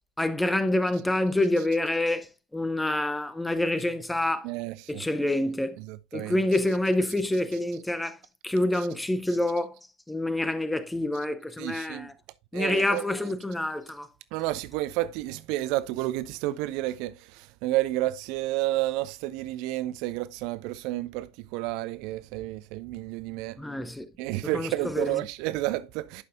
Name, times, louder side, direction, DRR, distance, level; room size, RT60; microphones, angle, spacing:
voice 1, 0.2-4.5 4.9-5.8 6.1-8.2 8.4-9.7 10.1-12.1 12.5-14.1 23.6-24.1 24.5-25.2, left 1 dB, 5° left, 0.7 m, -27 dB
voice 2, 4.4-5.0 5.8-6.4 8.7-8.9 11.6-12.1 12.5-13.0 14.3-23.6 24.2-26.2, right 16 dB, 50° right, 0.4 m, -31 dB
11.0 x 5.3 x 2.6 m
figure-of-eight pair, 75°, 0 cm